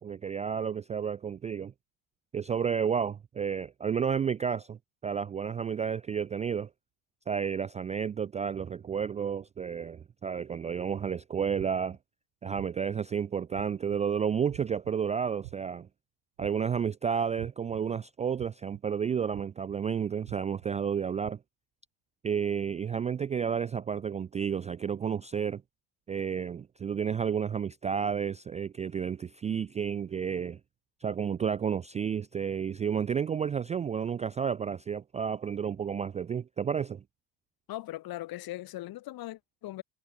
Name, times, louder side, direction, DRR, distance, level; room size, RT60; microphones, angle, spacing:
voice 1, 0.0-1.7 2.3-4.8 5.0-6.7 7.3-12.0 12.4-15.9 16.4-21.4 22.2-25.6 26.1-30.6 31.0-37.0, right 7 dB, 15° right, 0.3 m, -31 dB
sound 1, 11.6-12.0 12.5-13.0 13.5-14.0 14.5-14.9 15.4-15.8 16.4-16.8 17.4-17.8 18.4-18.8 19.3-19.8 20.3-20.7 21.2-21.3, right 28 dB, 75° right, 1.8 m, -46 dB
voice 2, 37.7-39.8, left 16 dB, 55° left, 2.7 m, -39 dB
supercardioid pair, 95°, 44 cm